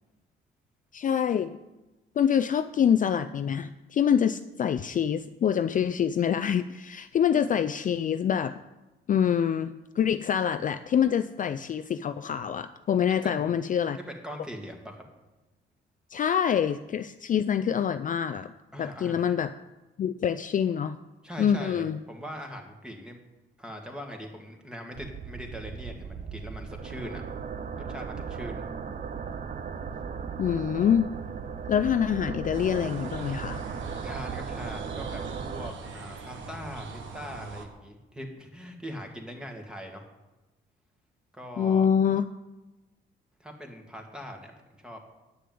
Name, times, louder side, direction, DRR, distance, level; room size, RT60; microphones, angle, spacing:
voice 1, 0.9-1.6 2.2-8.6 9.1-14.0 16.1-18.5 18.8-19.5 20.0-21.0 21.4-22.0 30.4-31.1 31.7-33.6 41.6-42.2, left 8 dB, 40° left, 10 dB, 0.4 m, -25 dB
voice 2, 13.2-13.6 14.0-15.0 18.7-19.3 21.2-23.2 23.6-27.2 27.9-28.6 34.0-35.2 35.5-40.1 41.3-41.9 43.4-45.0, equal, 5° right, 3 dB, 2.1 m, -41 dB
sound 1, 24.9-35.7, right 6 dB, 40° right, 0.6 m, -37 dB
sound 2, 32.5-37.7, right 4 dB, 75° right, 1.4 m, -41 dB
9.3 x 6.6 x 7.7 m, 1.1 s
cardioid pair, 90°, 20 cm